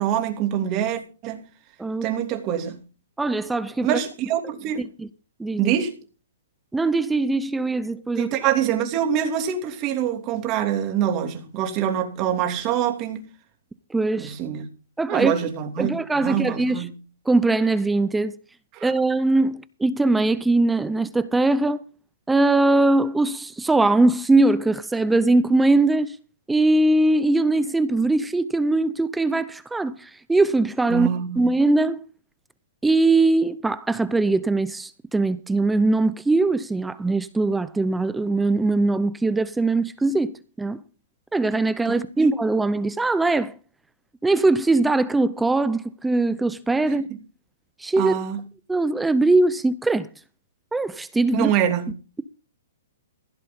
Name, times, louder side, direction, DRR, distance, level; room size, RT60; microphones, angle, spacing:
voice 1, 0.0-1.4 2.0-2.8 3.8-4.9 5.6-6.0 8.2-13.2 14.2-14.7 15.1-16.0 16.2-16.9 18.7-18.9 30.9-31.4 41.9-42.0 48.0-48.4 51.3-51.9, right 10 dB, 30° right, 3.0 m, -25 dB
voice 2, 1.8-2.1 3.2-4.0 4.8-5.1 5.4-5.7 6.7-8.3 13.9-14.3 15.0-15.3 15.8-16.9 17.3-18.4 18.8-21.8 22.3-26.2 26.5-31.1 31.4-32.0 32.8-40.8 41.3-43.6 44.2-47.1 47.8-48.2 48.7-50.1 50.7-51.5, right 2 dB, 5° right, 0.6 m, -21 dB
16.0 x 7.6 x 5.4 m
hypercardioid pair, 145°, 0 cm